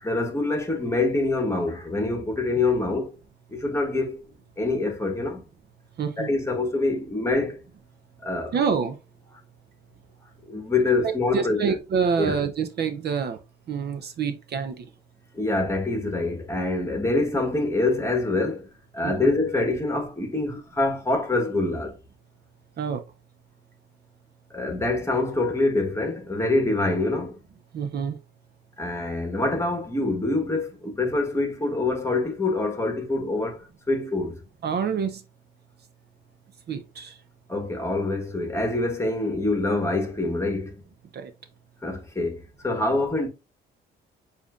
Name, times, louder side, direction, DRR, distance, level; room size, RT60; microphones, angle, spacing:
voice 1, 0.0-3.2 3.5-4.2 4.6-5.4 6.2-7.6 8.2-8.6 10.5-11.8 12.2-12.4 15.3-18.7 18.9-21.9 24.5-27.4 28.8-34.4 37.5-40.7 41.8-43.3, left 2 dB, 15° left, 1.2 m, -25 dB
voice 2, 6.0-6.3 8.5-9.0 11.0-13.4 13.7-14.9 19.0-19.1 22.8-23.0 27.7-28.2 34.6-35.2 36.7-37.2 41.1-41.3, right 6 dB, 55° right, 0.6 m, -27 dB
7.0 x 2.6 x 2.4 m
cardioid pair, 90°, 20 cm